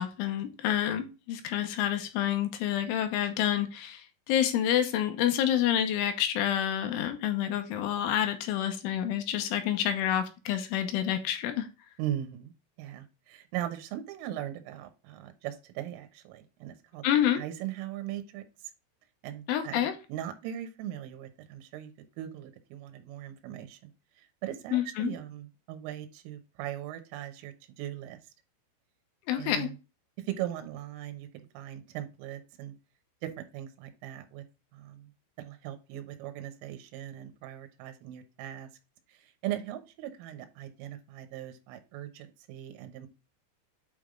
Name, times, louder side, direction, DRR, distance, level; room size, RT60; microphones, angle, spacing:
voice 1, 0.0-11.7 17.0-17.4 19.5-19.9 24.7-25.1 29.3-29.7, left 10 dB, 75° left, 7 dB, 3.2 m, -28 dB
voice 2, 12.0-12.5 12.8-17.0 17.4-18.5 19.2-21.9 22.2-23.8 24.2-28.2 29.3-29.8 30.3-31.3 31.6-32.8 33.2-34.4 34.7-35.1 35.4-38.7 39.1-43.1, right 12 dB, 80° right, 7 dB, 3.4 m, -39 dB
8.8 x 3.5 x 3.7 m, 0.30 s
omnidirectional pair, 5.9 m